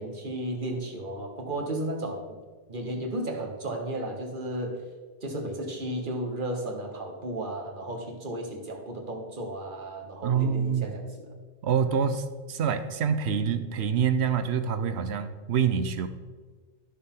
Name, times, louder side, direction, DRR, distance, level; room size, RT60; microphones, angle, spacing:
voice 1, 0.0-2.4 2.7-4.9 5.2-11.3, right 1 dB, 50° right, 2 dB, 1.5 m, -34 dB
voice 2, 10.2-10.9 11.6-16.1, right 7 dB, 75° right, 9 dB, 1.0 m, -26 dB
12.5 x 6.7 x 3.8 m, 1.5 s
omnidirectional pair, 1.1 m